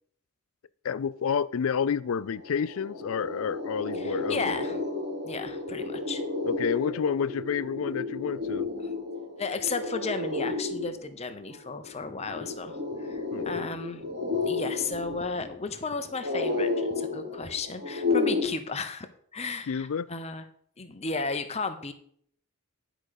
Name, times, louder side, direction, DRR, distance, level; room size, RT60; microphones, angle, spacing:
voice 1, 0.8-4.5 6.4-8.7 13.3-13.6 19.7-20.1, left 6 dB, 65° left, 0.4 m, -29 dB
sound 1, 1.9-2.0 2.3-18.5, left 3 dB, 45° right, 2.8 m, -32 dB
voice 2, 4.0-4.8 5.2-6.2 9.4-14.1 14.3-20.4 20.8-21.9, left 4 dB, 30° left, 0.8 m, -34 dB
10.5 x 5.1 x 6.4 m
head